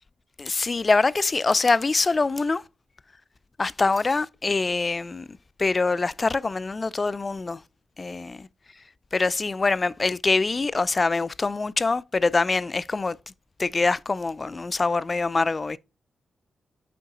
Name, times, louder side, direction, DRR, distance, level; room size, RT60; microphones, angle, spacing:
voice 1, 0.4-2.7 3.6-7.6 8.0-8.5 8.7-8.8 9.1-13.2 13.6-15.8, left 3 dB, 40° left, 0.3 m, -24 dB
9.3 x 3.6 x 2.9 m
supercardioid pair, 45°, 0 cm